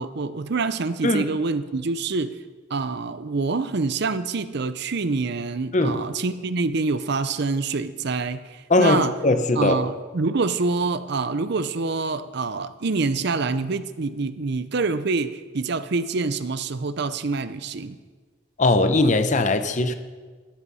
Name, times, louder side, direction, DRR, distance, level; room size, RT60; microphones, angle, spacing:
voice 1, 0.0-2.4 2.7-9.1 9.6-18.0, right 3 dB, 55° right, 13 dB, 0.6 m, -26 dB
voice 2, 8.7-9.8 18.6-19.9, left 2 dB, 35° left, 10 dB, 0.8 m, -20 dB
13.0 x 11.0 x 5.6 m, 1.4 s
head